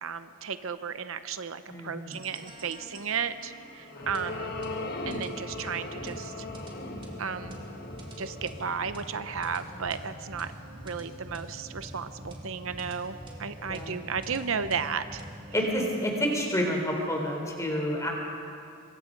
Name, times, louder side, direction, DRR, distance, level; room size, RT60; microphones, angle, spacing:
voice 1, 0.0-4.5 5.1-6.5 7.2-7.6 8.2-10.5 10.8-15.2, right 6 dB, 65° right, 11 dB, 0.7 m, -34 dB
voice 2, 1.7-2.2 3.9-4.0 9.7-9.9 13.7-14.0 15.5-18.1, equal, 15° left, 1 dB, 3.7 m, -29 dB
sound 1, 2.1-17.5, equal, 25° right, 3.0 m, -45 dB
sound 2, 3.3-9.9, left 2 dB, 45° left, 1.5 m, -39 dB
26.0 x 22.5 x 5.3 m, 2.5 s
head